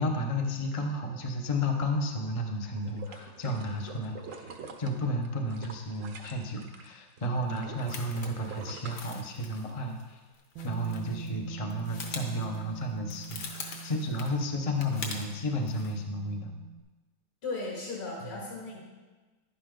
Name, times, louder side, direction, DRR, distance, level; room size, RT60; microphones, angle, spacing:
voice 1, 0.0-10.2 10.6-16.6 18.2-18.3, left 1 dB, 40° left, 2 dB, 0.4 m, -32 dB
sound 1, 2.7-6.9 7.2-9.7 10.1-10.2, right 5 dB, 55° right, 0.9 m, -46 dB
sound 2, 7.5-11.4 11.6-15.3 15.6-16.0, left 4 dB, 55° left, 1.6 m, -44 dB
Bass guitar, 10.6-16.8, right 7 dB, 75° right, 1.4 m, -44 dB
voice 2, 17.4-18.8, left 3 dB, 70° left, -4 dB, 3.1 m, -36 dB
11.0 x 10.0 x 3.8 m, 1.3 s
omnidirectional pair, 2.4 m